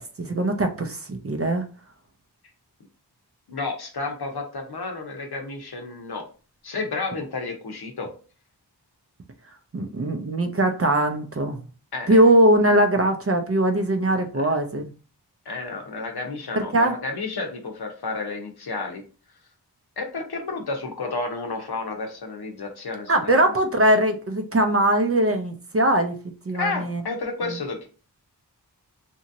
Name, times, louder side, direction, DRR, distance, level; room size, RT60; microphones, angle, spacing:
voice 1, 0.0-1.7 9.7-11.6 12.1-14.9 16.5-17.0 23.1-26.2 26.5-27.0, right 1 dB, 35° right, 6 dB, 0.5 m, -21 dB
voice 2, 3.5-6.3 6.6-8.1 11.9-12.2 14.3-14.5 15.5-19.0 20.0-23.5 26.5-27.9, left 3 dB, 65° left, 3 dB, 0.8 m, -31 dB
2.9 x 2.7 x 2.6 m, 0.36 s
wide cardioid pair, 45°, 41 cm